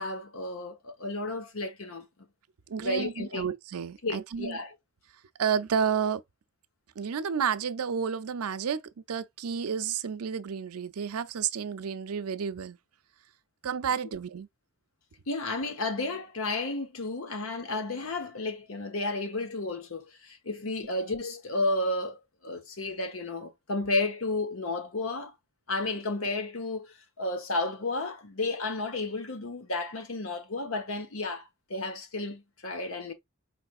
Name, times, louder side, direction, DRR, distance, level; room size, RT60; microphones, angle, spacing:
voice 1, 0.0-2.1 2.8-3.4 4.0-4.7 15.3-25.3 25.7-33.1, left 2 dB, 70° left, 1.0 m, -32 dB
voice 2, 2.7-4.6 5.4-6.2 7.0-8.8 9.1-12.8 13.6-14.5, right 7 dB, 90° right, 0.5 m, -31 dB
4.8 x 3.4 x 2.4 m
head